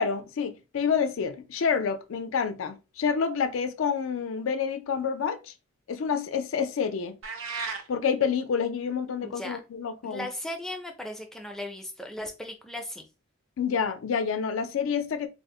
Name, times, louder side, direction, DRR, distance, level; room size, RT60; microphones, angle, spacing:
voice 1, 0.0-5.5 5.9-7.2 7.9-10.3 13.6-15.3, left 6 dB, 75° left, 0.4 m, -28 dB
sound 1, 7.2-7.9, right 4 dB, 80° right, 0.6 m, -33 dB
voice 2, 9.2-9.6 10.0-13.0, left 1 dB, ahead, 0.4 m, -37 dB
2.5 x 2.0 x 3.6 m
head